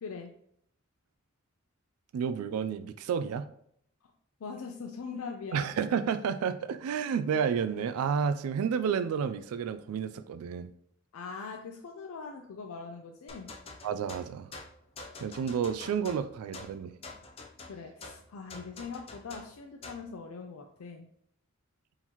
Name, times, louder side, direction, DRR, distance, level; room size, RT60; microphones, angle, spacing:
voice 1, 0.0-0.3 4.4-5.7 11.1-13.5 17.7-21.1, left 5 dB, 85° left, 3 dB, 0.4 m, -41 dB
voice 2, 2.1-3.5 5.5-10.7 13.8-14.5 15.2-17.0, right 7 dB, 90° right, 14 dB, 0.3 m, -31 dB
sound 1, 13.3-20.1, left 3 dB, 25° left, 0.5 m, -47 dB
4.3 x 3.8 x 2.9 m, 0.69 s
head